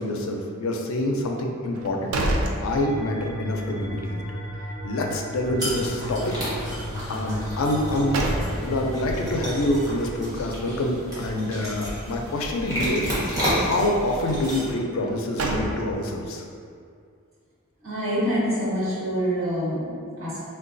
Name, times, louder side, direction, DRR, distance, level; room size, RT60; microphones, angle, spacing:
voice 1, 0.0-2.2 2.6-4.2 4.8-6.3 7.1-8.2 8.6-13.1 13.5-16.4, left 1 dB, 70° left, 1 dB, 0.4 m, -26 dB
sound 1, 1.7-3.4 3.7-3.8 7.7-8.9 15.0-16.2, right 1 dB, 90° right, 0.4 m, -28 dB
sound 2, 2.7-10.0, equal, 20° left, 0.7 m, -34 dB
sound 3, 5.6-14.7, equal, 20° right, 0.8 m, -31 dB
voice 2, 17.8-20.5, equal, 65° right, -11 dB, 1.4 m, -26 dB
3.8 x 2.2 x 2.5 m, 2.2 s
head